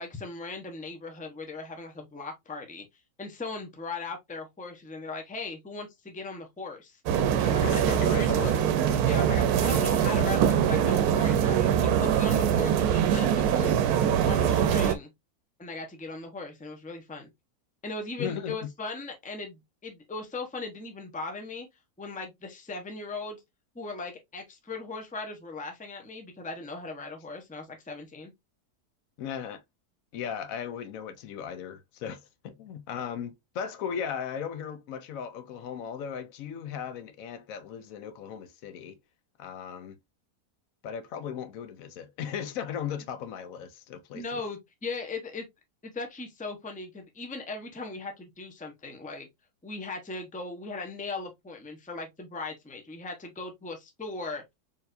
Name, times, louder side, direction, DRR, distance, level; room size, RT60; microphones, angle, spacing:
voice 1, 0.0-2.8 3.2-7.0 7.4-8.6 9.1-13.8 14.3-15.1 15.6-17.3 17.8-21.7 22.0-23.4 23.7-28.3 44.1-45.5 45.8-49.3 49.6-54.5, left 3 dB, 10° left, 0.6 m, -38 dB
sound 1, 7.1-15.0, right 9 dB, 80° right, 1.1 m, -23 dB
voice 2, 7.6-8.6 18.2-18.7 29.2-29.6 30.1-39.0 39.4-40.0 40.8-44.4, left 8 dB, 70° left, 0.9 m, -37 dB
4.5 x 3.4 x 2.5 m
omnidirectional pair, 1.6 m